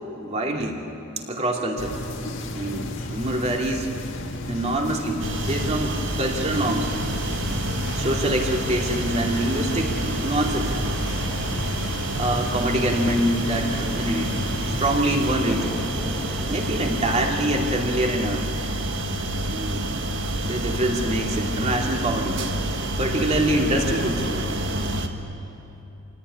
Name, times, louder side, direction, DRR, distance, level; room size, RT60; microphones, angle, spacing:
voice 1, 0.1-0.8 1.3-2.0 2.5-3.9 4.5-6.9 7.9-10.7 12.1-14.3 14.7-15.8 16.5-18.6 19.5-19.8 20.4-22.4 23.0-24.5, right 1 dB, 35° right, 1 dB, 2.7 m, -25 dB
sound 1, 1.8-15.3, left 1 dB, 70° left, 1.9 m, -33 dB
sound 2, 5.2-25.1, right 1 dB, 70° right, 1.6 m, -28 dB
sound 3, 6.5-17.3, equal, ahead, 1.5 m, -40 dB
27.0 x 17.0 x 9.9 m, 3.0 s
head